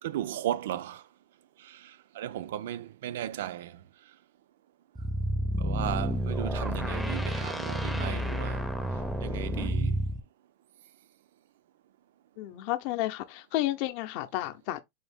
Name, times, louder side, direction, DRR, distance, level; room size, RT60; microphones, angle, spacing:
voice 1, 0.0-1.0 1.6-3.8 5.6-8.7 9.2-10.0, right 12 dB, 80° right, 0.3 m, -35 dB
sound 1, 5.0-10.2, equal, ahead, 0.5 m, -30 dB
voice 2, 12.4-14.8, left 15 dB, 55° left, 0.6 m, -31 dB
4.0 x 2.7 x 3.4 m
supercardioid pair, 150°, 0 cm